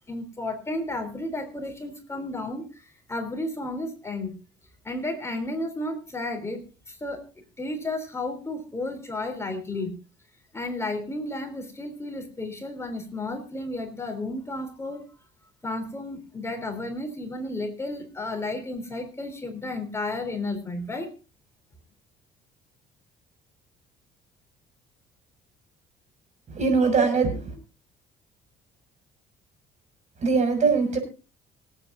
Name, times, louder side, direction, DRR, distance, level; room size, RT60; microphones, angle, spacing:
voice 1, 0.1-4.4 4.8-7.2 7.6-10.0 10.5-15.0 15.6-21.1, left 2 dB, 15° left, 5 dB, 3.5 m, -32 dB
voice 2, 26.5-27.5 30.2-31.0, right 4 dB, 45° right, 7 dB, 6.5 m, -22 dB
26.0 x 8.7 x 2.6 m, 0.33 s
cardioid pair, 110°, 17 cm